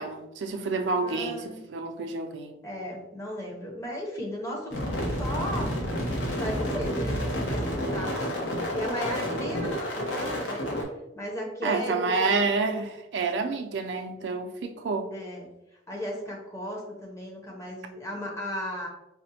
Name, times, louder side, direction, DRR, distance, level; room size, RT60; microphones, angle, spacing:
voice 1, 0.0-1.4 1.7-2.5 11.6-15.1, right 4 dB, 70° right, 0.4 m, -28 dB
voice 2, 1.0-1.6 2.6-5.7 6.1-8.3 8.7-10.7 11.1-12.4 15.1-15.5 15.9-18.9, equal, 15° left, 0.7 m, -36 dB
sound 1, 4.7-10.8, equal, 75° left, 0.8 m, -30 dB
4.9 x 2.1 x 2.7 m
head